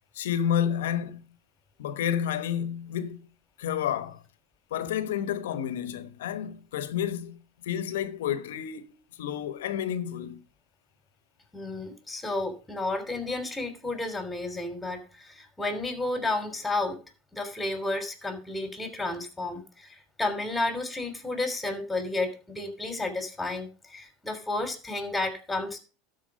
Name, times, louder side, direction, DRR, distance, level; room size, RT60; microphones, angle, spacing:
voice 1, 0.1-1.2 1.8-3.3 3.6-4.2 4.7-7.4 7.6-10.4, left 9 dB, 80° left, 1.1 m, -30 dB
voice 2, 11.5-17.0 17.3-25.8, left 2 dB, 10° left, 3.1 m, -32 dB
12.5 x 4.7 x 6.2 m
hypercardioid pair, 95°, 0 cm